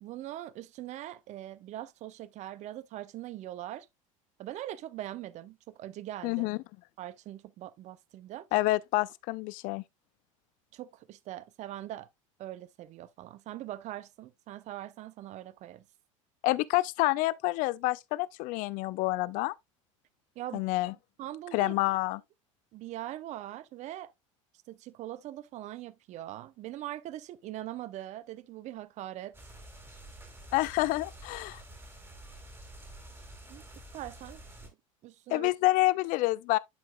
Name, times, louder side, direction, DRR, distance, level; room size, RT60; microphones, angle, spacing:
voice 1, 0.0-3.9 4.4-6.4 7.0-8.5 10.7-12.1 12.4-15.8 20.4-20.7 21.2-21.7 22.7-24.1 24.7-29.3 33.5-33.6 33.9-34.4 35.0-35.5, right 13 dB, 45° right, 0.6 m, -41 dB
voice 2, 6.2-6.6 8.5-9.8 16.4-19.5 20.5-20.9 21.5-22.2 30.5-31.6 35.3-36.6, left 19 dB, 50° left, 0.5 m, -28 dB
sound 1, 29.3-34.7, right 1 dB, 15° right, 2.9 m, -49 dB
11.5 x 4.7 x 2.2 m
hypercardioid pair, 80°, 17 cm